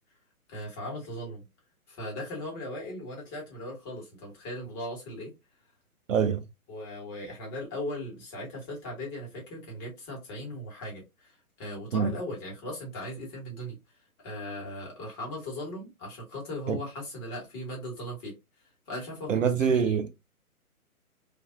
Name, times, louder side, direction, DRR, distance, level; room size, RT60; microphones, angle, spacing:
voice 1, 0.5-1.5 1.9-5.3 6.7-13.8 14.2-18.4 18.9-20.0, left 1 dB, 20° left, 1.2 m, -38 dB
voice 2, 6.1-6.4 11.9-12.1 16.7-16.8 19.3-20.1, right 7 dB, 60° right, 0.5 m, -24 dB
3.2 x 2.5 x 2.4 m
figure-of-eight pair, 135°, 44 cm